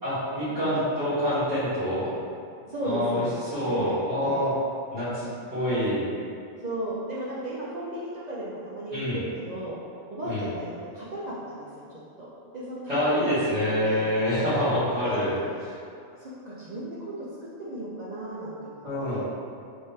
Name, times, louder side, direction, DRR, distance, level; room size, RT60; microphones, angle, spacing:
voice 1, 0.0-2.1 2.8-3.2 3.5-4.5 4.9-6.0 8.9-9.2 10.2-10.4 12.9-15.4 18.8-19.2, equal, 35° right, -16 dB, 1.3 m, -26 dB
voice 2, 2.6-3.3 3.7-4.0 4.2-4.5 6.6-9.8 10.1-14.1 14.5-15.2 16.1-18.8 19.1-19.2, right 1 dB, 55° right, -8 dB, 0.5 m, -35 dB
3.5 x 3.5 x 2.7 m, 2.4 s
omnidirectional pair, 1.3 m